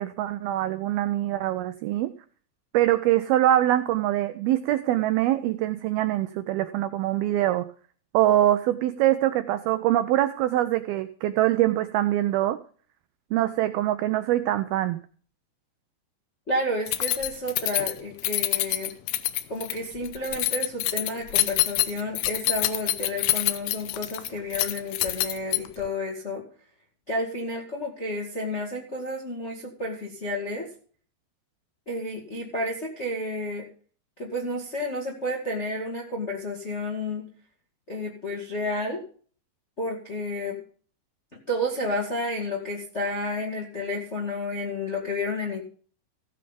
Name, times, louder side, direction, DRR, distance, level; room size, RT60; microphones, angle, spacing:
voice 1, 0.0-2.1 2.7-7.7 8.1-12.6 13.3-15.0, right 13 dB, 85° right, 10 dB, 2.2 m, -24 dB
voice 2, 16.5-18.9 19.5-26.4 27.1-30.7 31.8-33.6 34.2-37.3 37.9-39.0 39.8-40.6 41.5-45.6, left 1 dB, 30° left, -2 dB, 1.2 m, -31 dB
Keys jangling, 16.9-25.9, left 16 dB, 80° left, 2.6 m, -26 dB
15.5 x 7.7 x 5.2 m, 0.43 s
omnidirectional pair, 5.2 m